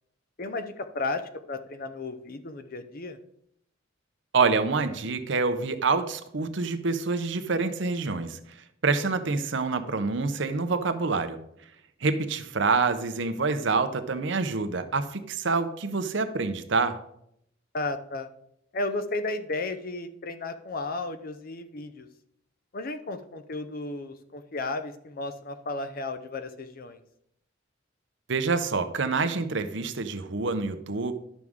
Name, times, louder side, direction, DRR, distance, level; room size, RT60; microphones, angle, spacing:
voice 1, 0.4-1.2 1.5-3.2 17.7-18.3 18.7-22.1 22.7-27.0, left 2 dB, 45° left, 9 dB, 0.7 m, -33 dB
voice 2, 4.3-8.4 8.8-11.4 12.0-17.0 28.3-31.1, right 4 dB, 65° right, 10 dB, 0.7 m, -27 dB
11.0 x 6.2 x 3.6 m, 0.74 s
head